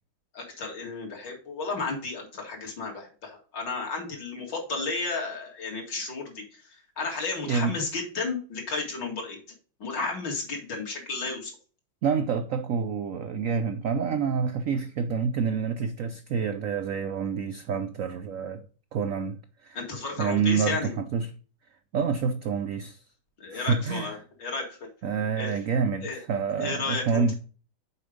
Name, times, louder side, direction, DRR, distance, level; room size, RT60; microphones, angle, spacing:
voice 1, 0.3-9.4 9.8-11.5 19.7-20.9 23.4-24.8 25.4-25.6 26.0-26.2 26.6-27.3, left 3 dB, 60° left, 2.9 m, -33 dB
voice 2, 12.0-18.6 18.9-19.8 20.2-21.3 21.9-23.0 23.5-24.1 25.0-27.3, right 6 dB, 80° right, 0.7 m, -28 dB
7.0 x 4.9 x 5.0 m
omnidirectional pair, 2.2 m